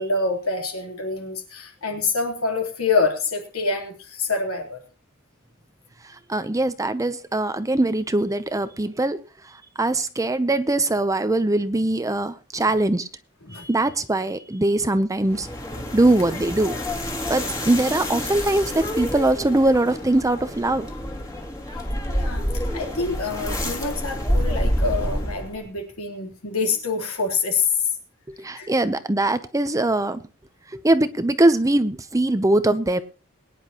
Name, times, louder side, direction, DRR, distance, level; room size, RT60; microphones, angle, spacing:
voice 1, 0.0-4.8 13.4-13.7 22.1-27.9 28.5-28.7, left 4 dB, 70° left, 3 dB, 3.5 m, -26 dB
voice 2, 6.3-9.2 9.8-13.1 13.5-15.5 15.9-16.8 17.3-20.9 28.4-30.2 30.7-33.0, right 2 dB, 15° right, 12 dB, 0.7 m, -21 dB
sound 1, 15.2-25.6, equal, 15° left, 2.4 m, -28 dB
22.0 x 10.5 x 3.0 m, 0.33 s
head